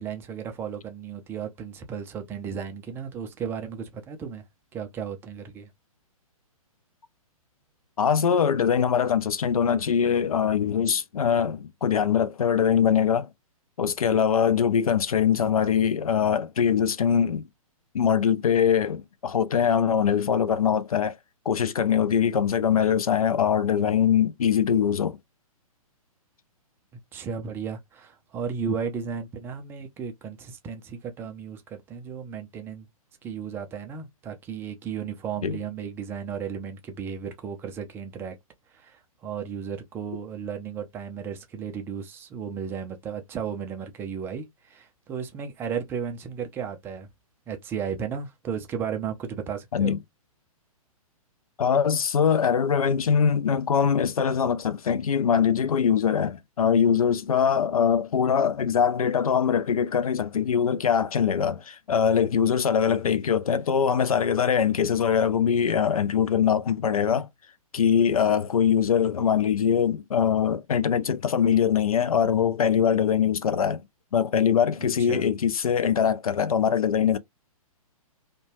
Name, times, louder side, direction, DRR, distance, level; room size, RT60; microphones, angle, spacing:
voice 1, 0.0-4.4 4.7-5.7 27.1-32.9 33.2-38.4 38.7-47.1 47.5-50.0 74.8-75.2, right 7 dB, 10° right, 0.4 m, -34 dB
voice 2, 8.0-13.3 13.8-17.5 17.9-21.2 21.5-25.2 35.4-35.6 49.7-50.0 51.6-67.3 67.7-73.8 74.1-77.2, left 7 dB, 70° left, 0.4 m, -22 dB
2.7 x 2.2 x 2.8 m
figure-of-eight pair, 120°, 19 cm